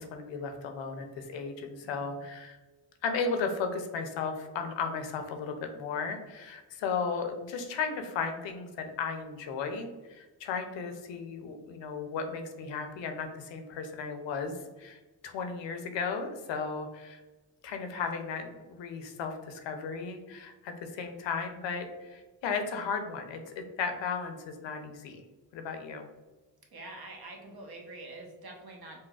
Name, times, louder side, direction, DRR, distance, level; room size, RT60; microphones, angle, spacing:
voice 1, 0.0-2.6 3.0-17.2 17.6-25.2 25.5-26.1, left 5 dB, 85° left, 6 dB, 0.6 m, -35 dB
voice 2, 1.8-2.2 26.7-29.0, right 2 dB, 60° right, 1 dB, 0.9 m, -46 dB
3.9 x 2.1 x 2.3 m, 1.1 s
cardioid pair, 55°, 43 cm